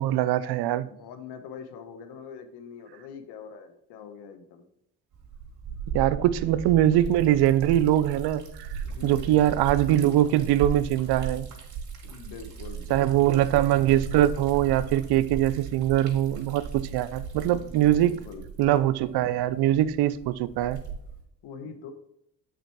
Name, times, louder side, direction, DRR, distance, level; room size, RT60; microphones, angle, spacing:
voice 1, 0.0-0.9 5.9-8.4 9.0-11.5 12.9-18.2 18.6-20.8, right 13 dB, 75° right, 0.6 m, -22 dB
voice 2, 0.8-4.6 8.8-9.5 12.0-13.4 18.0-18.5 21.4-21.9, left 6 dB, 80° left, 1.2 m, -43 dB
Liquid, 5.1-21.2, right 6 dB, 45° right, 2.3 m, -37 dB
8.1 x 4.1 x 4.6 m
cardioid pair, 85°, 39 cm